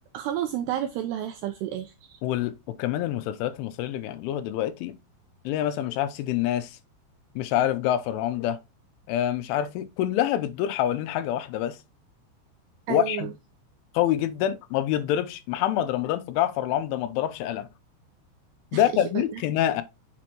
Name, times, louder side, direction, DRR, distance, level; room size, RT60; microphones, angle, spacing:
voice 1, 0.1-2.2 12.9-13.3 18.7-19.4, right 11 dB, 90° right, 2.3 m, -31 dB
voice 2, 2.2-4.9 5.5-6.8 7.4-8.6 9.1-11.8 12.9-13.3 13.9-17.7 18.7-19.8, left 12 dB, 90° left, 3.2 m, -26 dB
6.8 x 6.1 x 3.0 m
omnidirectional pair, 5.5 m